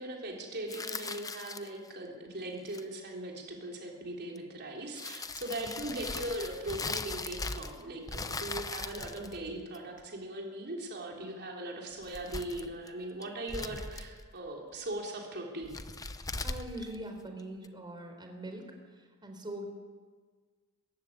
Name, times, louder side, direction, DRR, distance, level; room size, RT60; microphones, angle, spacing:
voice 1, 0.0-15.8, right 1 dB, 50° right, 0 dB, 3.7 m, -39 dB
sound 1, 0.7-1.9 2.6-3.0 4.4-4.5 4.9-7.8 8.1-10.0 11.9-12.9 13.2-14.3 15.6-17.7, left 3 dB, 15° left, 0.8 m, -39 dB
voice 2, 16.4-18.7 19.2-19.7, right 1 dB, 20° right, 4 dB, 3.9 m, -42 dB
20.5 x 15.0 x 9.6 m, 1.5 s
head